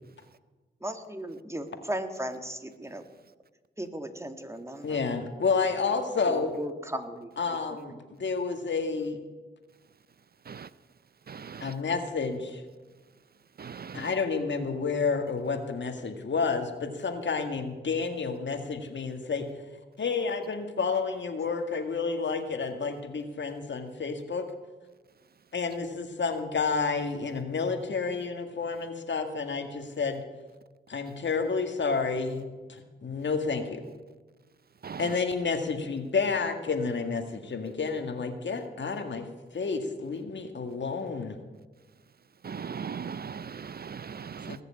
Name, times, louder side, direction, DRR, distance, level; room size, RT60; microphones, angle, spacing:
voice 1, 0.8-3.0 3.8-5.0 6.2-7.3 7.7-8.0, right 1 dB, 15° right, 1.9 m, -36 dB
voice 2, 4.8-6.5 7.4-9.2 11.6-12.6 13.9-19.4 20.0-24.5 25.5-30.2 30.9-32.4 32.7-33.8 35.0-39.3 39.5-41.4 44.5-44.6, left 4 dB, 70° left, 1.9 m, -30 dB
voice 3, 11.3-11.7 13.6-14.1 34.8-35.2 42.4-44.6, right 6 dB, 50° right, 0.5 m, -39 dB
19.5 x 6.8 x 8.5 m
cardioid pair, 50°, 20 cm